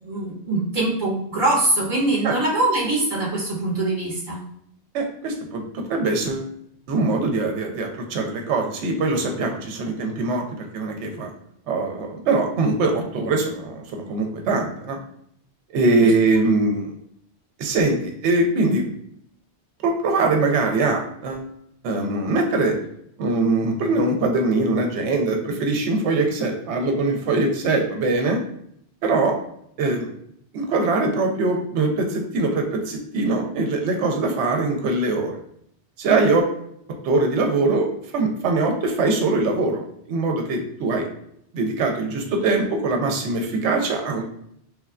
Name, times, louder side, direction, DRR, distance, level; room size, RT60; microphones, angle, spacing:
voice 1, 0.0-4.4 16.0-16.1, right 2 dB, 45° right, -6 dB, 1.3 m, -23 dB
voice 2, 4.9-6.5 6.9-10.4 10.7-11.3 11.7-15.0 15.7-16.9 17.6-18.9 19.8-21.5 21.8-22.8 23.2-28.4 29.0-29.4 29.8-30.1 30.5-35.4 36.0-36.5 37.0-37.9 38.1-41.1 41.5-44.2, right 3 dB, 80° right, 3 dB, 0.9 m, -22 dB
3.1 x 2.2 x 2.3 m, 0.70 s
omnidirectional pair, 1.2 m